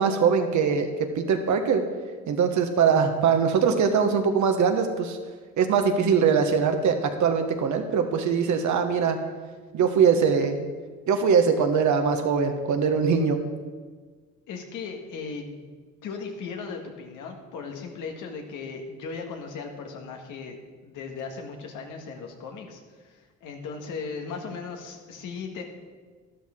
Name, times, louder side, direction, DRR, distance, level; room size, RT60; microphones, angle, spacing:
voice 1, 0.0-1.8 2.3-5.2 5.6-9.2 9.7-10.7 11.1-13.4, right 6 dB, 70° right, 6 dB, 1.4 m, -22 dB
voice 2, 14.5-20.6 20.8-25.6, left 5 dB, 90° left, 3 dB, 1.7 m, -37 dB
12.0 x 12.0 x 3.8 m, 1.5 s
cardioid pair, 90°, 30 cm